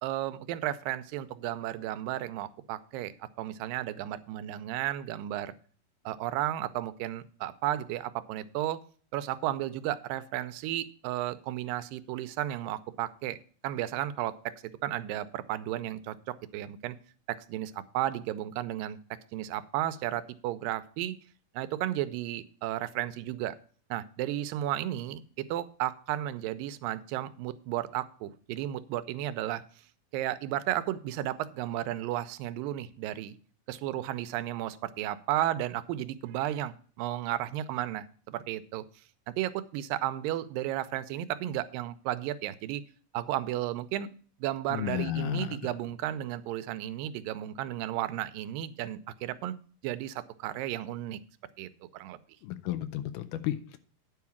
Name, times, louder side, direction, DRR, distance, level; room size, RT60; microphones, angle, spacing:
voice 1, 0.0-3.1 3.4-5.5 6.1-8.8 9.1-13.4 13.6-17.0 17.3-19.0 19.3-21.2 21.5-23.6 23.9-29.6 30.1-33.4 33.7-38.8 39.3-42.8 43.1-44.1 44.4-49.5 49.8-51.2 51.6-52.2, right 13 dB, 85° right, 13 dB, 2.3 m, -33 dB
voice 2, 44.7-45.6 52.4-53.8, left 13 dB, 80° left, 11 dB, 2.1 m, -33 dB
9.7 x 4.7 x 7.1 m, 0.43 s
omnidirectional pair, 3.9 m